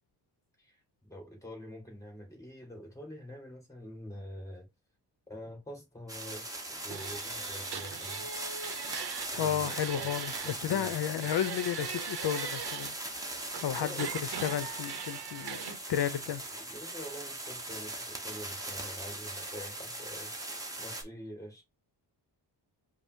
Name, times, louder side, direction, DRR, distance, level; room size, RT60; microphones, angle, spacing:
voice 1, 0.6-4.7 5.3-8.3 9.3-9.7 9.9-10.1 10.4-10.9 13.7-14.0 15.9-20.3 20.8-21.6, equal, 5° left, 1.9 m, -46 dB
sound 1, 6.1-21.0, right 2 dB, 10° right, 0.9 m, -40 dB
sound 2, 6.9-10.6 10.8-12.9 13.5-15.8, right 8 dB, 65° right, 0.7 m, -41 dB
voice 2, 9.4-16.4, left 9 dB, 70° left, 0.7 m, -33 dB
5.2 x 2.1 x 4.5 m
wide cardioid pair, 165°, 42 cm